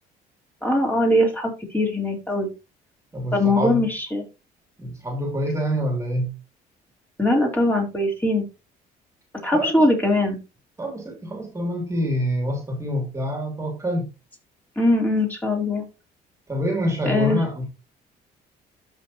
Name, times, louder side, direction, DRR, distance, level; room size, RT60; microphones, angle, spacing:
voice 1, 0.6-2.5 3.3-4.2 7.2-8.4 9.4-10.4 14.7-15.8 17.0-17.4, left 1 dB, 10° left, 3.5 m, -21 dB
voice 2, 3.1-3.9 4.8-6.3 9.5-9.9 10.8-14.1 16.5-17.6, equal, 15° right, 2.7 m, -26 dB
13.5 x 5.4 x 2.9 m
cardioid pair, 110°, 17 cm